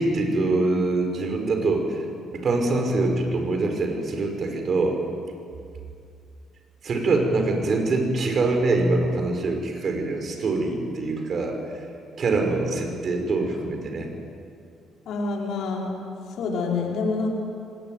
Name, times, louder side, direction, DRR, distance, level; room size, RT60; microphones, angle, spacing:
voice 1, 0.0-5.0 6.8-11.8 12.2-14.1, right 2 dB, 50° right, 4 dB, 5.6 m, -24 dB
voice 2, 15.1-16.1 16.4-17.3, left 4 dB, 75° left, -1 dB, 5.5 m, -27 dB
24.5 x 20.0 x 9.6 m, 2.3 s
supercardioid pair, 70°, 0 cm